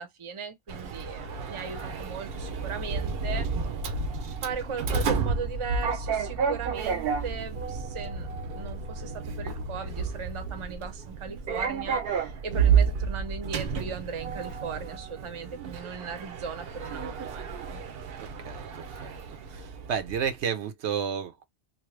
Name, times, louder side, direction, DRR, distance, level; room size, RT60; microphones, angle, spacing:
voice 1, 0.0-3.5 4.4-8.3 8.5-17.8, right 6 dB, 35° right, 0.6 m, -38 dB
Sliding door, 0.7-20.3, right 5 dB, 65° right, 0.8 m, -31 dB
voice 2, 18.4-19.1 19.5-21.4, right 7 dB, 85° right, 1.0 m, -32 dB
3.0 x 2.1 x 3.1 m
omnidirectional pair, 1.1 m